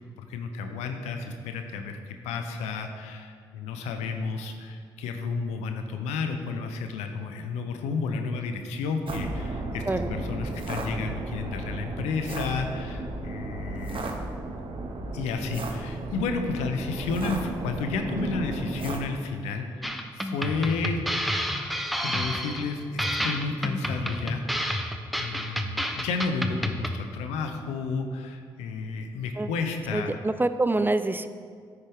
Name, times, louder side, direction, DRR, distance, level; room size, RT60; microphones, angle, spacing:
voice 1, 0.3-9.8 10.1-14.0 15.1-21.0 22.0-24.8 25.2-30.2, left 4 dB, 85° left, 6 dB, 0.7 m, -32 dB
sound 1, 9.1-19.0, right 2 dB, 50° right, 1.0 m, -34 dB
sound 2, 19.8-27.0, equal, ahead, 0.8 m, -30 dB
voice 2, 29.9-31.3, right 2 dB, 20° right, 12 dB, 0.4 m, -26 dB
9.5 x 6.5 x 3.6 m, 2.1 s
hypercardioid pair, 45°, 11 cm